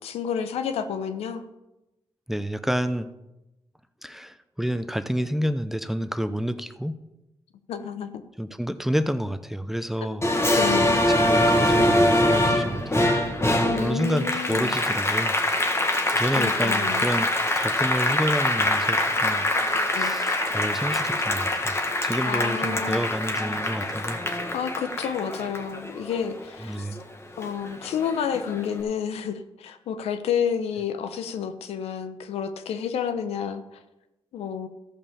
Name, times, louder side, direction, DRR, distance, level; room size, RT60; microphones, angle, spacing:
voice 1, 0.0-1.4 7.7-8.2 10.6-11.0 13.6-14.7 16.3-17.1 19.9-20.1 22.3-23.0 24.5-26.9 27.4-33.8 34.3-34.7, left 7 dB, 85° left, 10 dB, 0.9 m, -30 dB
voice 2, 2.3-3.1 4.0-7.0 8.4-10.6 11.1-13.2 13.8-15.3 15.7-21.8 22.0-24.2 26.6-27.0, equal, 5° right, 11 dB, 0.8 m, -29 dB
Applause, 10.2-27.0 27.4-28.6, left 1 dB, 25° left, 1.8 m, -24 dB
14.0 x 5.5 x 6.9 m, 0.98 s
supercardioid pair, 55°, 10 cm